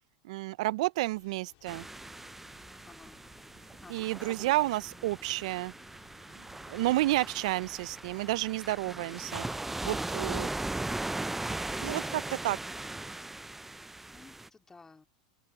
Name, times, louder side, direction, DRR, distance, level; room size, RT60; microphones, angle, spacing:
voice 1, 0.2-1.9 3.9-5.7 6.7-9.4 9.8-10.5 11.8-12.6, right 18 dB, 70° right, 0.4 m, -30 dB
sound 1, 1.1-9.6, left 27 dB, 60° left, 2.4 m, -63 dB
sound 2, 1.7-14.5, right 2 dB, 5° right, 0.4 m, -39 dB
voice 2, 2.9-3.2 3.8-4.7 13.7-15.1, left 4 dB, 15° left, 3.0 m, -55 dB
hypercardioid pair, 115°, 4 cm